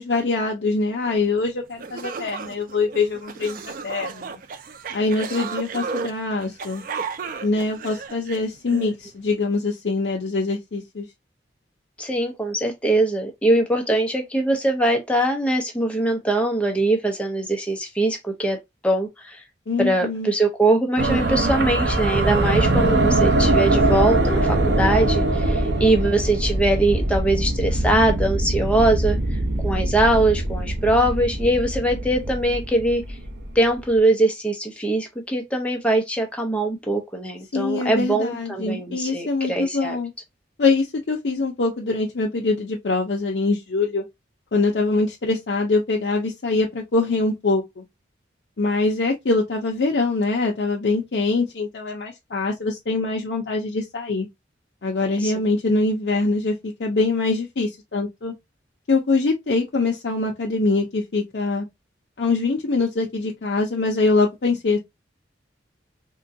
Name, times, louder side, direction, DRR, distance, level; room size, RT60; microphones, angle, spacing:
voice 1, 0.0-4.4 4.9-6.8 7.4-11.1 19.7-20.3 37.5-40.1 40.6-44.0 44.5-47.8 48.6-54.3 54.8-58.3 58.9-61.7 62.2-64.8, left 3 dB, 65° left, 0.6 m, -23 dB
sound 1, 1.4-1.5 1.8-8.9, right 5 dB, 45° right, 0.4 m, -34 dB
voice 2, 12.0-18.6 18.8-19.4 19.8-33.0 33.5-40.0 55.2-55.3, right 1 dB, 5° left, 0.7 m, -22 dB
sound 2, 21.0-33.6, right 2 dB, 60° right, 0.7 m, -22 dB
3.7 x 2.2 x 2.6 m
head